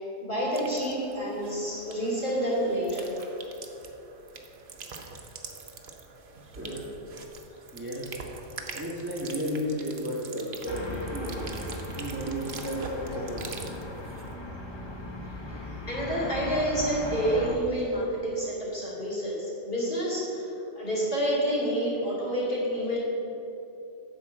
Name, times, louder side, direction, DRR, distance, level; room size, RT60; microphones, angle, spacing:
voice 1, 0.0-3.3 15.5-15.6 15.9-23.0, equal, 40° left, -7 dB, 2.7 m, -29 dB
sound 1, 0.5-14.4, right 4 dB, 50° right, 0.9 m, -44 dB
voice 2, 6.5-6.9 7.7-8.2 8.7-11.6 11.9-13.6, equal, 10° right, -5 dB, 1.2 m, -33 dB
sound 2, 10.7-17.6, left 1 dB, 25° left, 0.8 m, -38 dB
10.0 x 4.5 x 7.5 m, 2.9 s
omnidirectional pair, 1.3 m